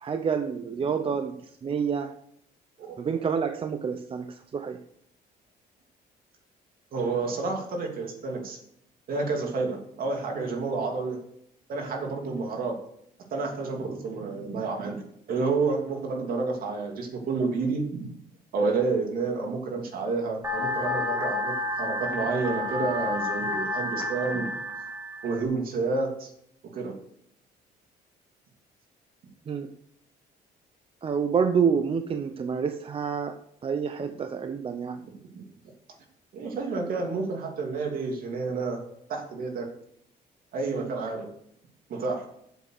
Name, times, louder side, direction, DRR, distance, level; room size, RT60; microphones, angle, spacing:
voice 1, 0.0-2.2 3.0-4.8 29.5-29.7 31.0-35.0 40.8-40.9, right 6 dB, 35° right, 8 dB, 0.7 m, -28 dB
voice 2, 6.9-8.6 9.1-11.2 11.7-12.7 13.3-15.0 15.3-18.1 18.5-24.5 25.2-26.3 26.7-26.9 35.3-35.4 36.3-38.8 39.1-39.7 40.5-41.3 41.9-42.2, right 4 dB, 60° right, 2 dB, 2.7 m, -29 dB
sound 1, 20.4-25.4, left 2 dB, 15° right, 2.5 m, -30 dB
8.0 x 7.5 x 6.5 m, 0.72 s
cardioid pair, 110°, 17 cm